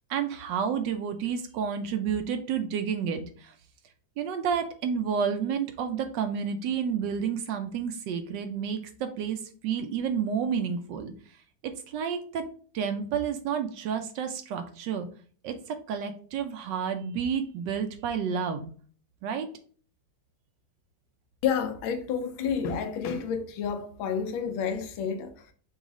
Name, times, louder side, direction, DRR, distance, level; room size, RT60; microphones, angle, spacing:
voice 1, 0.1-3.5 4.2-11.1 11.6-12.5 12.7-15.1 15.4-18.7 19.2-19.5, right 7 dB, 75° right, 1.1 m, -30 dB
voice 2, 21.4-25.5, left 7 dB, 85° left, 1.5 m, -30 dB
6.0 x 2.4 x 3.7 m
omnidirectional pair, 2.1 m